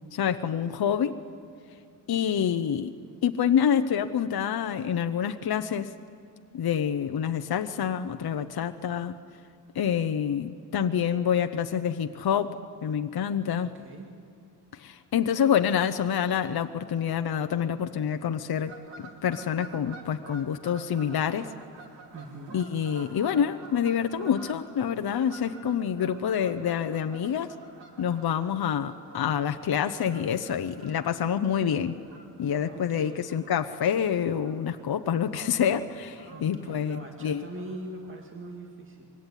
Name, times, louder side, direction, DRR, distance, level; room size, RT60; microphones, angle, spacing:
voice 1, 0.1-1.2 2.1-2.9 3.2-5.9 6.5-9.2 9.7-13.7 14.7-21.5 22.5-27.5 28.0-32.0 32.4-37.5, left 8 dB, 60° left, 7 dB, 0.8 m, -27 dB
voice 2, 13.5-14.1 22.1-22.6 32.7-33.2 36.3-39.1, right 1 dB, 30° right, 1 dB, 2.3 m, -42 dB
Fowl / Bird vocalization bird call bird song, 18.7-38.6, right 3 dB, 85° right, 2.9 m, -50 dB
25.0 x 22.5 x 9.9 m, 2.3 s
wide cardioid pair, 175°, 42 cm